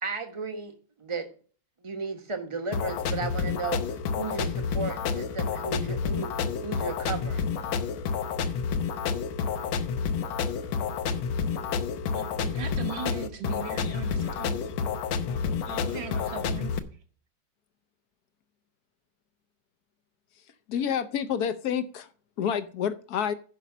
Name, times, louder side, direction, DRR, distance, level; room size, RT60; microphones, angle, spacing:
voice 1, 0.0-1.3 1.8-7.4, right 4 dB, 20° right, 6 dB, 0.9 m, -34 dB
sound 1, 2.7-16.8, left 6 dB, 75° left, 1.7 m, -29 dB
voice 2, 12.1-14.6 15.7-16.8, right 9 dB, 65° right, 4 dB, 1.8 m, -39 dB
voice 3, 20.7-22.1 22.4-23.3, left 8 dB, 60° left, 12 dB, 1.1 m, -28 dB
10.0 x 5.4 x 6.1 m, 0.41 s
omnidirectional pair, 2.2 m